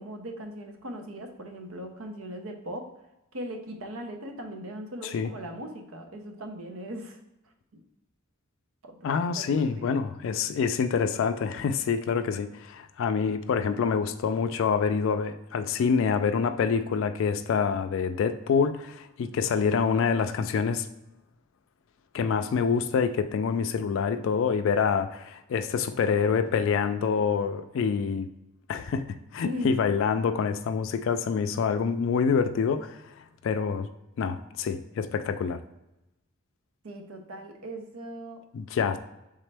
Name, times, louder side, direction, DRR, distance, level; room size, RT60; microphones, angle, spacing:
voice 1, 0.0-2.9 3.3-7.2 7.7-7.8 8.8-10.0 29.4-29.7 36.8-38.5, equal, 90° right, 4 dB, 0.8 m, -39 dB
voice 2, 9.0-20.9 22.1-28.3 28.7-33.1 33.4-33.9 34.2-35.6 38.5-39.0, left 6 dB, 65° left, 8 dB, 0.3 m, -26 dB
4.1 x 3.6 x 3.3 m, 0.93 s
head